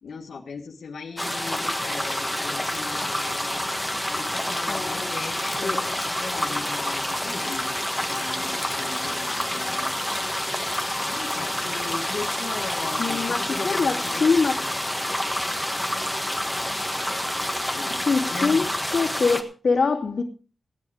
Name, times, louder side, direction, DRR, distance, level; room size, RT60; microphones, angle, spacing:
voice 1, 0.0-3.6 4.1-9.9 11.1-14.3 17.7-18.7, left 5 dB, 90° left, 1.7 m, -37 dB
sound 1, 1.2-19.4, left 1 dB, ahead, 1.6 m, -28 dB
voice 2, 4.7-5.2 5.6-5.8 13.0-14.6 18.1-18.7 18.9-20.2, left 4 dB, 55° left, 2.5 m, -23 dB
16.5 x 9.9 x 5.0 m
wide cardioid pair, 140°, 0 cm